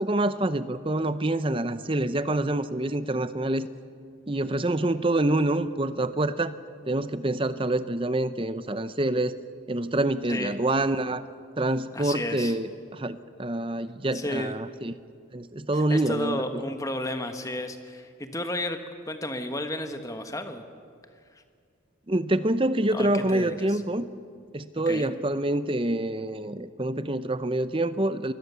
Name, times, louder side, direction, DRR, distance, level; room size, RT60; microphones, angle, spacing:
voice 1, 0.0-3.7 4.3-6.5 6.9-9.3 9.7-11.2 11.6-14.9 15.3-16.6 22.1-24.1 24.5-28.3, right 1 dB, 25° right, 13 dB, 0.8 m, -26 dB
voice 2, 11.9-12.5 14.1-14.5 15.7-18.8 19.1-20.6 22.9-23.8 24.8-25.1, left 1 dB, 15° left, 7 dB, 1.4 m, -32 dB
26.5 x 20.5 x 7.0 m, 2.3 s
head